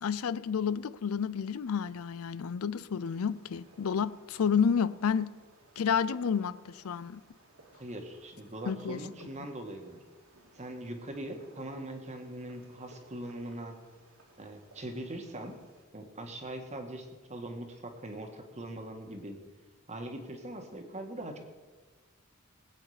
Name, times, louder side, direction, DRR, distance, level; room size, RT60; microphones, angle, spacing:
voice 1, 0.0-5.3 5.8-7.2 8.7-9.0 9.4-9.5, left 7 dB, 85° left, 0.5 m, -30 dB
Fireworks, 3.0-15.9, right 2 dB, 85° right, 3.1 m, -60 dB
voice 2, 7.8-10.0 10.5-13.7 14.4-15.6 15.9-19.4 19.9-21.4, right 1 dB, 35° right, 1.7 m, -41 dB
20.5 x 8.7 x 5.0 m
head